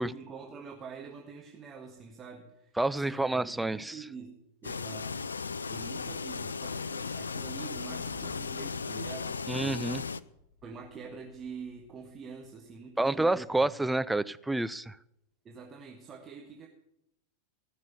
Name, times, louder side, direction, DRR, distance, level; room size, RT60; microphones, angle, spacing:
voice 1, 0.0-4.3 4.6-5.2 5.7-9.8 10.6-13.7 15.4-16.7, right 5 dB, 25° right, 1 dB, 1.6 m, -46 dB
voice 2, 2.8-4.0 9.5-10.0 13.0-15.0, right 2 dB, 5° right, 15 dB, 0.4 m, -29 dB
sound 1, 4.6-10.2, left 5 dB, 75° left, 0.4 m, -36 dB
Explosion, 10.3-12.5, equal, 30° left, 3.6 m, -58 dB
17.0 x 6.3 x 9.5 m, 0.81 s
figure-of-eight pair, 90°, 0 cm